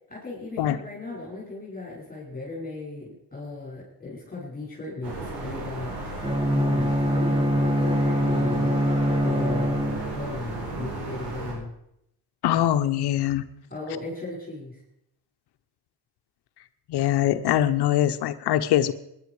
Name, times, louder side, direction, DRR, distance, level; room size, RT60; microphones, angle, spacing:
voice 1, 0.0-6.0 6.5-8.8 9.2-9.8 10.1-11.7 13.7-14.8, left 2 dB, 20° left, -4 dB, 5.9 m, -36 dB
sound 1, 5.0-11.5, right 2 dB, 80° right, 5.5 m, -34 dB
Bowed string instrument, 6.2-10.4, equal, 15° right, 1.5 m, -24 dB
voice 2, 12.4-13.4 16.9-18.9, left 12 dB, 85° left, 10 dB, 1.0 m, -22 dB
18.5 x 11.0 x 4.9 m, 0.78 s
cardioid pair, 85°, 39 cm